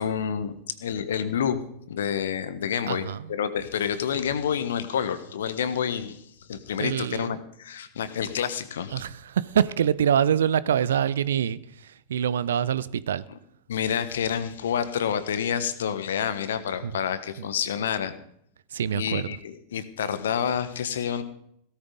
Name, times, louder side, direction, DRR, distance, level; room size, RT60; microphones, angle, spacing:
voice 1, 0.0-1.6 1.9-6.2 6.5-9.0 13.3-13.4 13.7-18.1 18.9-21.2, left 8 dB, 60° left, 1.3 m, -28 dB
voice 2, 2.9-3.3 6.8-7.3 8.9-13.2 16.8-16.9 17.4-17.5 18.7-19.3, right 9 dB, 65° right, 0.6 m, -25 dB
17.5 x 13.0 x 3.9 m
figure-of-eight pair, 90°, 0 cm